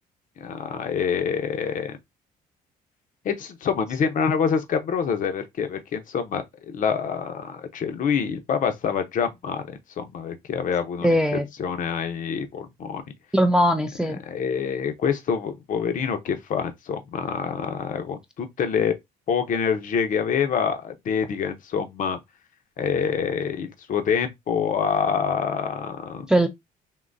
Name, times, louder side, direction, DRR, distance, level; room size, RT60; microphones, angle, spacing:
voice 1, 0.4-2.0 3.2-13.0 14.3-18.9 19.3-22.2 22.8-26.2, left 7 dB, 50° left, 0.8 m, -26 dB
voice 2, 11.0-11.5 13.3-14.2 26.3-26.5, equal, 5° right, 0.3 m, -20 dB
3.7 x 2.7 x 2.6 m
cardioid pair, 110°, 17 cm